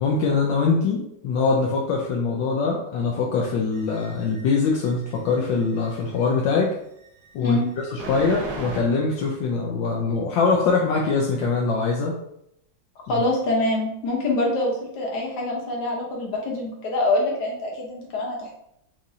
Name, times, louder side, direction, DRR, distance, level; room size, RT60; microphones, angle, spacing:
voice 1, 0.0-6.8 7.3-12.2 13.1-13.2, left 4 dB, 80° left, -1 dB, 1.3 m, -23 dB
sound 1, 3.7-6.2 7.0-8.8, right 2 dB, 60° right, 1.3 m, -37 dB
voice 2, 7.4-7.7 13.1-18.6, left 2 dB, 65° left, -2 dB, 1.6 m, -25 dB
6.0 x 2.6 x 2.7 m, 0.78 s
omnidirectional pair, 2.0 m